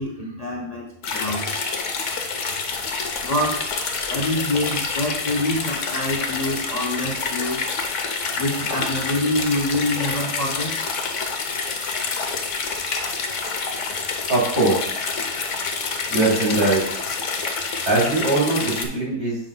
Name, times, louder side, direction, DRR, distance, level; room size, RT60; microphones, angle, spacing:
voice 1, 0.0-1.5 3.2-7.6 8.4-10.7, left 1 dB, 35° left, -1 dB, 0.7 m, -26 dB
sound 1, 1.0-18.9, left 4 dB, 60° left, 1.1 m, -27 dB
voice 2, 14.3-14.8 16.1-16.8 17.9-19.4, right 2 dB, 80° right, -6 dB, 3.6 m, -20 dB
9.1 x 5.7 x 2.2 m, 0.72 s
omnidirectional pair, 1.6 m